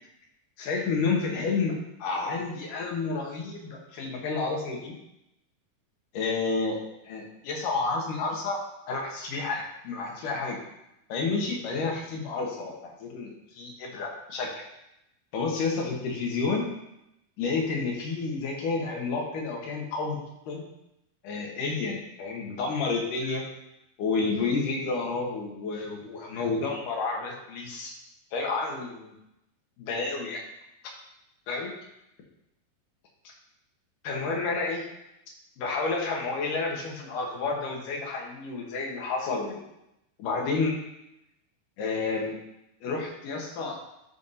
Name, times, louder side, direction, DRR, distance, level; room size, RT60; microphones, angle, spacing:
voice 1, 0.6-5.0 6.1-8.6 8.9-10.6 11.1-14.6 15.3-16.6 17.4-20.2 20.5-20.7 21.2-23.4 24.0-28.0 28.3-29.1 29.8-30.4 31.5-31.7 34.0-34.8 35.6-39.6 40.2-40.7 41.8-42.4 42.8-43.8, left 4 dB, 70° left, 0 dB, 2.6 m, -30 dB
10.0 x 5.6 x 2.7 m, 0.85 s
omnidirectional pair, 4.2 m